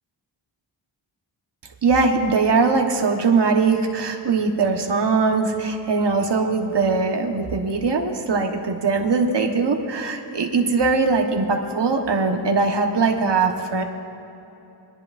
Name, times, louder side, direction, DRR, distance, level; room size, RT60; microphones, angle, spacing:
voice 1, 1.8-13.8, right 4 dB, 60° right, 3 dB, 1.2 m, -21 dB
28.0 x 10.5 x 2.5 m, 3.0 s
wide cardioid pair, 65°, 47 cm